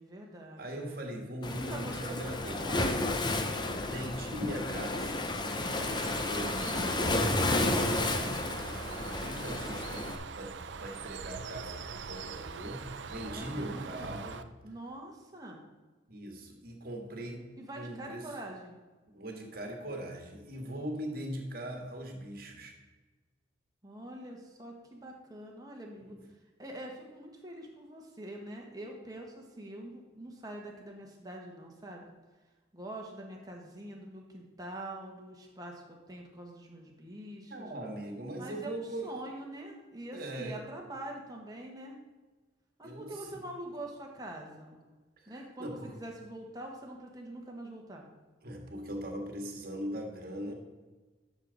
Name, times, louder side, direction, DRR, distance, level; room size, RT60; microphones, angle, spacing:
voice 1, 0.0-1.0 1.7-3.1 13.2-14.2 14.6-15.6 17.6-18.7 23.8-26.1 26.6-32.1 32.7-37.7 38.4-42.0 42.8-44.8 45.3-48.0, right 1 dB, 20° right, 0 dB, 1.5 m, -44 dB
voice 2, 0.6-2.9 3.8-5.7 6.1-8.2 8.8-10.1 10.4-14.4 16.1-18.3 19.1-22.7 26.0-26.3 37.5-39.2 40.1-40.6 42.8-43.3 45.2-46.0 48.4-50.5, right 1 dB, 50° right, 2 dB, 1.7 m, -40 dB
Waves surf, 1.4-10.2, left 2 dB, 20° left, 0.6 m, -32 dB
Bird, 5.6-14.4, right 5 dB, 65° right, 0.5 m, -42 dB
11.5 x 6.5 x 4.1 m, 1.3 s
head